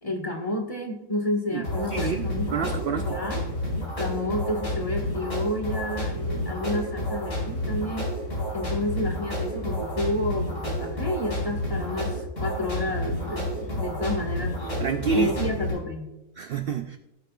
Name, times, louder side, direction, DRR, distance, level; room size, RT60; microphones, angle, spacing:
voice 1, 0.0-2.7 3.1-3.4 3.7-8.1 8.5-14.8 15.1-16.2, left 1 dB, 25° left, 1 dB, 1.5 m, -30 dB
voice 2, 1.5-3.2 14.8-15.5 16.4-17.0, right 6 dB, 60° right, 8 dB, 0.6 m, -28 dB
sound 1, 1.6-15.7, left 1 dB, 80° left, 4.9 m, -30 dB
17.0 x 8.5 x 2.4 m, 0.95 s
omnidirectional pair, 1.4 m